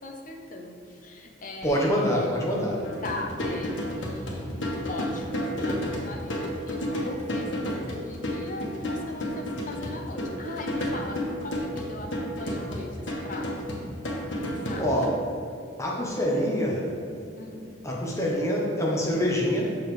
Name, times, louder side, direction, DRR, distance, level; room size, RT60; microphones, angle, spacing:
voice 1, 0.0-2.3 3.0-13.8 14.4-14.8 17.4-17.7, left 2 dB, 45° left, 2 dB, 0.8 m, -39 dB
voice 2, 1.6-2.8 14.8-15.2 15.8-16.9 17.8-19.8, equal, 15° left, -3 dB, 0.9 m, -25 dB
sound 1, 2.8-15.1, equal, 85° left, 1.3 m, -31 dB
6.9 x 6.8 x 3.2 m, 2.5 s
head